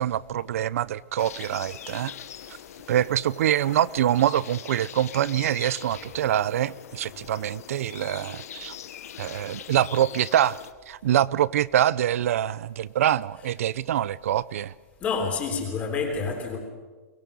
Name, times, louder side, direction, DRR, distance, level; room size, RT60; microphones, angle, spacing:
voice 1, 0.0-2.1 2.9-8.7 9.2-14.7, right 11 dB, 70° right, 0.7 m, -25 dB
sound 1, 1.2-10.7, left 10 dB, 80° left, 1.4 m, -42 dB
voice 2, 15.0-16.6, left 5 dB, 15° left, 3.6 m, -28 dB
23.5 x 21.0 x 7.0 m
supercardioid pair, 175°, 8 cm